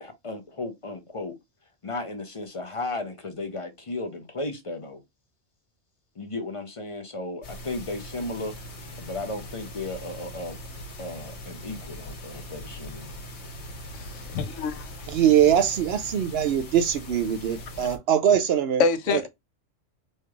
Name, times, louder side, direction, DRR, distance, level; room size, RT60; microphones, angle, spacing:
voice 1, 0.0-1.3 1.8-5.0 6.2-8.6 9.0-10.6 11.0-13.1, left 2 dB, 40° left, 0.5 m, -35 dB
sound 1, 7.4-18.0, equal, 65° left, 1.2 m, -41 dB
voice 2, 13.9-14.9 18.8-19.3, left 5 dB, 85° left, 0.9 m, -26 dB
voice 3, 15.1-18.8 19.1-19.2, right 9 dB, 65° right, 0.7 m, -22 dB
4.3 x 3.1 x 2.3 m
omnidirectional pair, 1.3 m